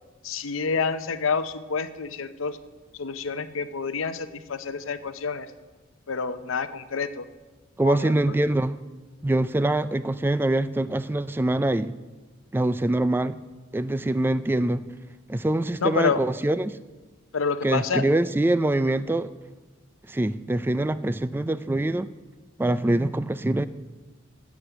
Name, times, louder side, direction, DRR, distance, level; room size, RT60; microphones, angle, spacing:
voice 1, 0.2-2.6 2.9-5.5 6.1-7.3 7.8-8.1 15.8-16.2 17.3-18.1, left 5 dB, 75° left, 12 dB, 0.7 m, -28 dB
voice 2, 7.8-8.8 9.2-12.0 12.5-13.4 13.7-14.8 15.3-16.7 17.6-19.3 20.1-22.1 22.6-23.7, right 1 dB, 10° right, 14 dB, 0.3 m, -24 dB
13.5 x 8.4 x 6.0 m, 1.3 s
head